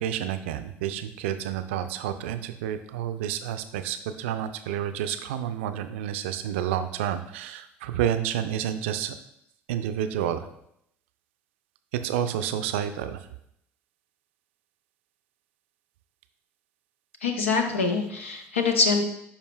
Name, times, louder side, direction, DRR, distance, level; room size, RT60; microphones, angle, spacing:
voice 1, 0.0-9.1 9.7-10.5 11.9-13.3, right 10 dB, 70° right, 9 dB, 0.4 m, -29 dB
voice 2, 17.2-19.1, left 4 dB, 85° left, 5 dB, 0.7 m, -24 dB
10.5 x 4.4 x 2.2 m, 0.75 s
figure-of-eight pair, 55°, 7 cm